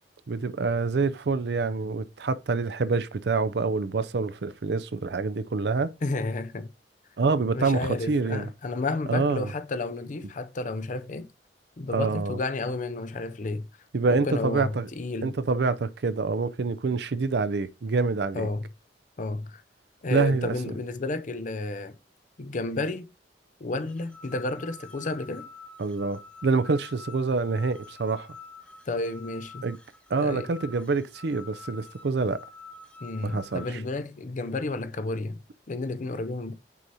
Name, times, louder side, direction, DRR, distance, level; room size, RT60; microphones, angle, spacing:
voice 1, 0.3-5.9 7.2-8.5 9.1-9.5 11.9-12.4 13.9-14.9 15.2-18.5 20.1-20.7 25.8-28.3 29.6-29.8 30.1-32.4 33.2-33.8, right 4 dB, 65° right, 0.5 m, -26 dB
voice 2, 6.0-6.7 7.5-11.3 11.8-13.7 14.0-15.4 18.3-18.6 19.2-19.6 20.0-22.0 22.4-23.1 23.6-25.5 28.9-29.7 30.2-30.5 33.0-36.5, left 2 dB, 45° left, 0.5 m, -31 dB
sound 1, 23.9-33.7, left 4 dB, 5° left, 0.7 m, -47 dB
6.3 x 2.8 x 5.4 m
head